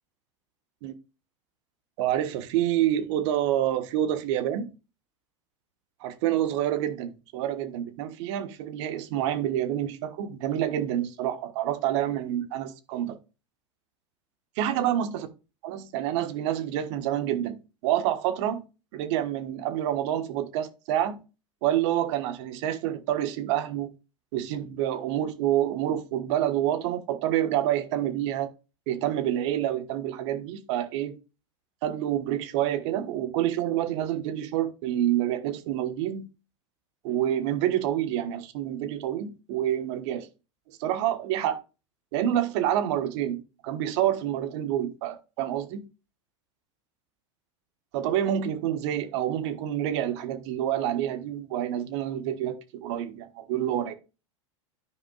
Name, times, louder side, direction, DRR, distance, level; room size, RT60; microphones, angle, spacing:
voice 1, 2.0-4.7 6.0-13.2 14.6-15.3 15.6-18.6 18.9-21.2 21.6-23.9 24.3-28.5 28.9-31.2 31.8-36.3 37.0-40.3 40.7-41.6 42.1-45.9 47.9-52.5 52.8-54.0, right 11 dB, 65° right, 1.3 m, -28 dB
13.0 x 5.0 x 2.4 m
hypercardioid pair, 95°, 16 cm